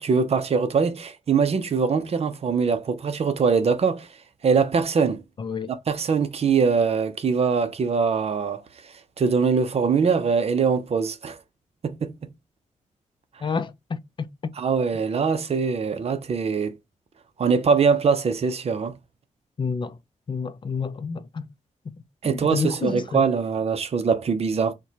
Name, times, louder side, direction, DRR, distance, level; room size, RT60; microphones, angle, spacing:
voice 1, 0.0-5.2 5.7-11.4 11.8-12.3 13.3-13.5 14.6-16.8 17.4-19.0 22.2-24.7, right 5 dB, 50° right, 0.6 m, -23 dB
voice 2, 5.4-5.7 13.4-14.5 19.6-20.0 20.3-21.5 21.8-21.9 22.2-23.2, left 5 dB, 35° left, 0.4 m, -29 dB
4.5 x 2.2 x 2.7 m
wide cardioid pair, 105°, 13 cm